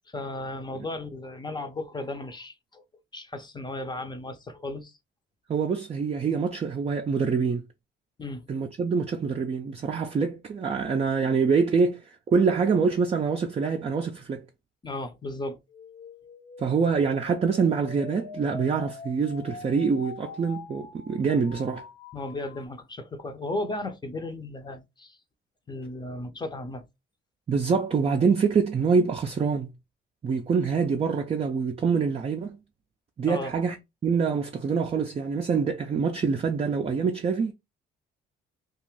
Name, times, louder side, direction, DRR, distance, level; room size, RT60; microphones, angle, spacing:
voice 1, 0.1-2.8 3.1-5.0 8.2-8.4 14.8-15.6 22.1-25.2 25.7-26.9 33.3-33.5, left 2 dB, 20° left, 0.6 m, -35 dB
voice 2, 5.5-7.6 8.5-14.4 16.6-21.8 27.5-29.7 30.2-32.6 33.2-33.8 34.0-37.5, right 5 dB, 30° right, 0.4 m, -25 dB
sound 1, 15.7-22.7, left 4 dB, 60° left, 0.7 m, -44 dB
2.5 x 2.4 x 3.1 m
cardioid pair, 90°, 20 cm